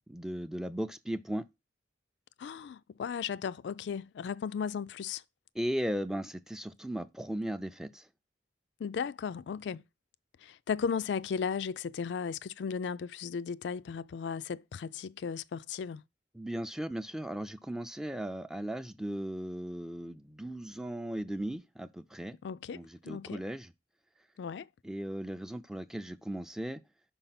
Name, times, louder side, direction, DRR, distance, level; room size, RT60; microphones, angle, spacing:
voice 1, 0.1-1.4 5.5-8.1 16.3-22.4 22.7-23.7 24.8-26.8, right 1 dB, 5° right, 0.4 m, -37 dB
voice 2, 2.4-5.2 8.8-9.8 10.4-16.0 22.4-22.8 23.0-23.4 24.4-24.7, left 6 dB, 70° left, 0.3 m, -35 dB
5.5 x 4.5 x 5.7 m
head